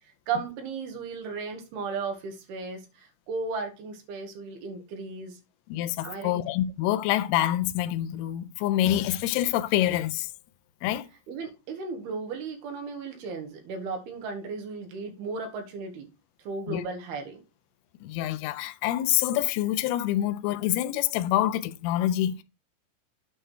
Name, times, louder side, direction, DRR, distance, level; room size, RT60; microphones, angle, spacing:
voice 1, 0.3-5.4 6.0-6.4 11.3-16.1 16.4-17.4, right 4 dB, 65° right, 3.1 m, -35 dB
voice 2, 5.7-10.3 10.8-11.1 16.7-16.8 18.0-22.4, left 13 dB, 90° left, 2.2 m, -26 dB
9.1 x 3.4 x 6.3 m
omnidirectional pair, 5.3 m